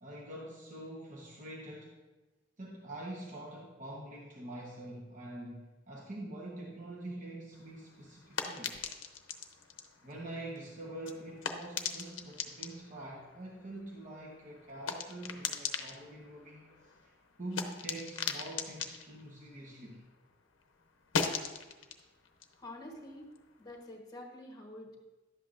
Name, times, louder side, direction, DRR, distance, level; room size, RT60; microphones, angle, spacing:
voice 1, 0.0-1.9 2.6-8.8 10.0-17.1 17.4-20.0, right 1 dB, 40° right, -4 dB, 1.0 m, -45 dB
sound 1, 7.5-20.3 20.6-23.8, left 6 dB, 80° left, 0.7 m, -41 dB
voice 2, 22.5-23.3 23.6-25.0, left 1 dB, 20° left, 1 dB, 1.1 m, -47 dB
11.0 x 7.8 x 2.5 m, 1.1 s
head